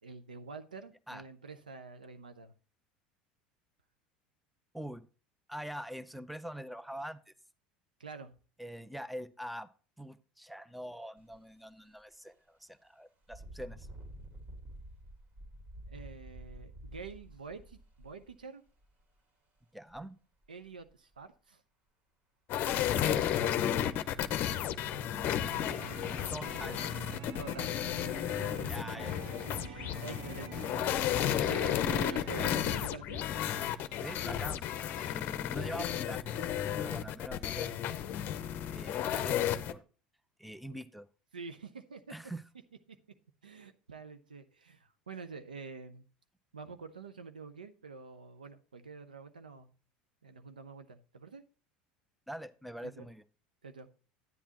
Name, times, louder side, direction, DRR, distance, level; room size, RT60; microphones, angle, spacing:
voice 1, 0.0-2.5 8.0-8.3 15.9-18.6 20.5-21.6 23.0-24.2 27.4-28.1 28.6-28.8 29.7-33.2 41.3-42.0 43.4-46.1 46.5-49.7 50.2-51.4 52.8-53.1 53.6-53.9, right 4 dB, 90° right, 9 dB, 0.7 m, -47 dB
voice 2, 4.7-5.1 5.5-7.2 8.6-9.7 10.0-13.9 19.7-20.2 26.3-27.0 28.7-29.4 30.6-30.8 31.1-31.3 31.9-32.1 34.0-34.7 35.0-36.4 36.8-38.1 38.7-39.8 40.4-41.1 42.1-42.4 52.3-53.2, equal, ahead, 16 dB, 0.6 m, -44 dB
Engine, 11.2-11.4 11.9-12.0 13.2-19.0 19.9-20.0 20.4-21.2 23.0-23.1 23.5-23.6 24.0-24.1 24.4-24.9 25.5-25.6 26.2-26.7, right 1 dB, 40° right, 2.4 m, -50 dB
sound 1, 22.5-39.7, left 10 dB, 50° left, 0.6 m, -33 dB
sound 2, 24.3-32.4, right 4 dB, 60° right, 1.5 m, -47 dB
10.0 x 9.4 x 2.9 m, 0.37 s
hypercardioid pair, 75°, 4 cm